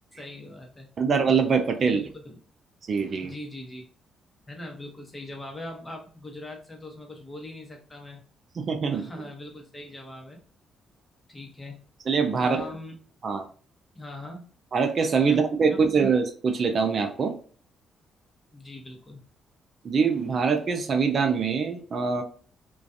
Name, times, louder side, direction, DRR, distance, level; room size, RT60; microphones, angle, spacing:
voice 1, 0.2-0.9 1.8-2.3 3.2-3.8 4.5-8.2 8.9-10.4 11.3-11.8 12.4-12.9 13.9-14.5 15.3-15.9 18.5-19.2, left 1 dB, 20° left, 1 dB, 0.9 m, -41 dB
voice 2, 1.0-2.0 2.9-3.3 8.6-9.0 12.1-12.6 13.2-13.5 14.7-17.3 19.8-22.2, right 5 dB, 50° right, 6 dB, 0.4 m, -24 dB
2.4 x 2.2 x 2.6 m, 0.44 s
cardioid pair, 90°, 0 cm